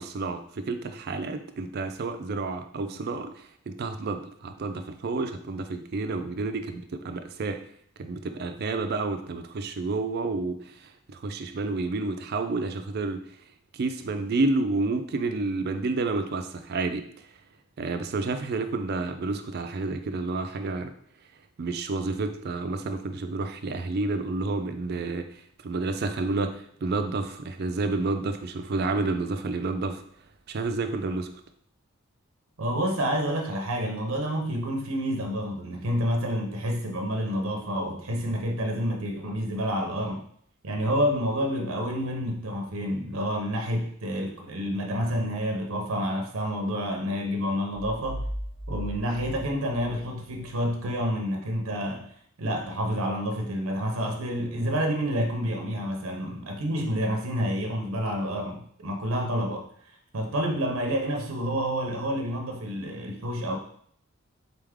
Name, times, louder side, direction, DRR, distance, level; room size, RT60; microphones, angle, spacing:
voice 1, 0.0-7.6 8.0-13.2 13.7-17.3 17.8-20.9 21.6-30.0 30.5-31.3, right 3 dB, 50° right, 7 dB, 0.4 m, -30 dB
voice 2, 32.6-40.2 40.6-48.2 48.7-52.1 52.4-59.7 60.1-63.6, equal, 80° right, 2 dB, 0.7 m, -29 dB
sound 1, 47.7-50.5, equal, 15° left, 1.7 m, -37 dB
4.0 x 3.4 x 3.5 m, 0.64 s
head